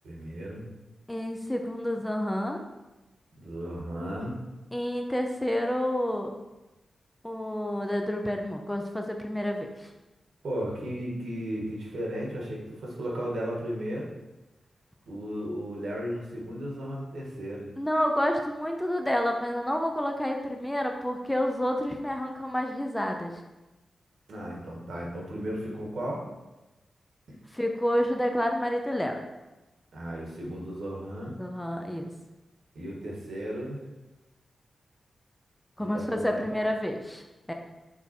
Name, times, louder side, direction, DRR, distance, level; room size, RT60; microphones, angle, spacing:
voice 1, 0.0-0.7 3.3-4.4 10.4-14.1 15.1-17.7 24.3-26.3 29.9-31.3 32.8-33.8 35.8-36.5, equal, 75° right, -2 dB, 1.7 m, -35 dB
voice 2, 1.1-2.6 4.7-6.3 7.2-9.9 17.8-23.3 27.5-29.2 31.4-32.1 35.8-37.2 37.5-37.6, equal, 5° left, 3 dB, 0.5 m, -29 dB
6.0 x 3.6 x 4.3 m, 1.0 s
wide cardioid pair, 170°, 0 cm